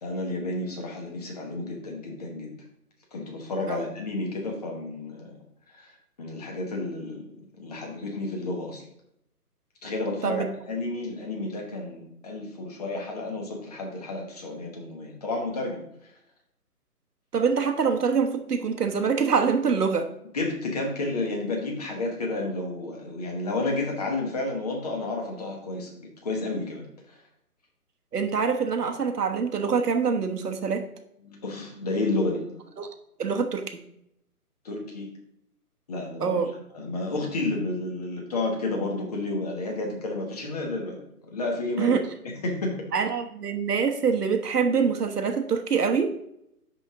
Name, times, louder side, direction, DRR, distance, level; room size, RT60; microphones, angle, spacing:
voice 1, 0.0-2.5 3.1-5.4 5.7-7.2 7.6-8.8 9.8-15.8 20.3-27.2 31.2-32.5 34.6-35.1 35.9-36.4 36.7-42.0 42.4-42.8, left 2 dB, 25° left, 0 dB, 1.2 m, -31 dB
voice 2, 17.3-20.1 28.1-30.8 32.8-32.9 33.2-33.8 36.2-36.5 41.8-42.0 42.9-46.1, right 5 dB, 85° right, 5 dB, 1.3 m, -25 dB
10.0 x 3.7 x 3.6 m, 0.77 s
hypercardioid pair, 165°, 46 cm